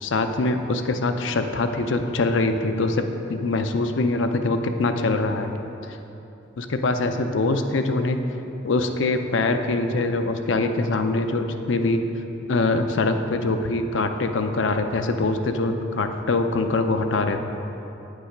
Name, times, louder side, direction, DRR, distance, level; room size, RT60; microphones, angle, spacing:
voice 1, 0.0-5.6 5.9-6.0 6.6-8.2 8.6-12.0 12.5-17.4, left 2 dB, 75° left, 6 dB, 0.5 m, -23 dB
9.0 x 5.5 x 5.0 m, 3.0 s
head